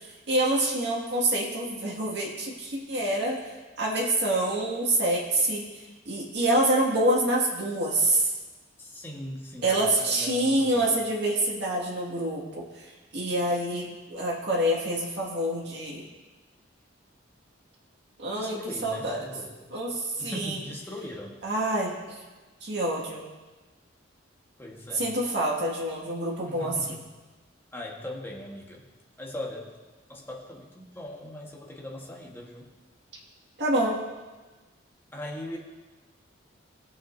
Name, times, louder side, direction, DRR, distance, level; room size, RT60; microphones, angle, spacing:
voice 1, 0.3-3.4 3.8-5.7 6.1-8.3 9.6-12.8 13.1-16.0 18.2-19.2 19.7-20.6 21.4-21.9 22.6-23.3 24.9-26.8 33.6-34.0, right 1 dB, 60° right, -4 dB, 2.2 m, -26 dB
voice 2, 8.8-10.9 18.3-19.7 20.2-21.4 24.6-25.1 26.4-27.1 27.7-28.8 29.2-29.7 30.1-32.7 35.1-35.6, left 1 dB, 10° left, -2 dB, 1.5 m, -40 dB
19.0 x 7.4 x 2.8 m, 1.2 s
head